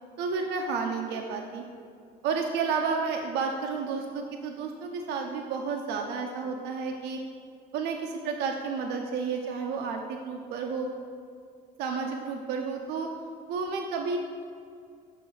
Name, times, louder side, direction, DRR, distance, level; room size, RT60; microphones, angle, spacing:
voice 1, 0.2-1.6 2.2-7.2 7.7-10.9 11.8-13.1 13.5-14.2, right 5 dB, 85° right, 2 dB, 0.6 m, -31 dB
6.3 x 3.8 x 6.1 m, 2.4 s
cardioid pair, 110°, 17 cm